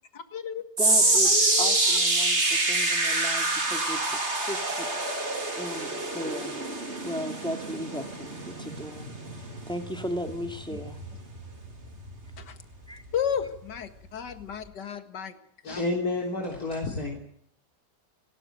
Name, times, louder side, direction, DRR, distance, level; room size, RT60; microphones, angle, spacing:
voice 1, 0.1-2.0 10.7-10.8 12.4-12.6 13.1-15.4 15.6-15.8, left 8 dB, 75° left, 9 dB, 2.3 m, -34 dB
voice 2, 0.8-1.3 1.6-4.9 5.6-11.0 12.9-13.0, equal, 5° left, 5 dB, 2.5 m, -36 dB
sound 1, 0.8-13.1 13.4-13.8 14.4-14.5, right 2 dB, 40° right, 3.8 m, -27 dB
voice 3, 15.6-17.2, left 2 dB, 60° left, 0 dB, 4.1 m, -30 dB
29.0 x 13.0 x 9.2 m, 0.70 s
omnidirectional pair, 1.9 m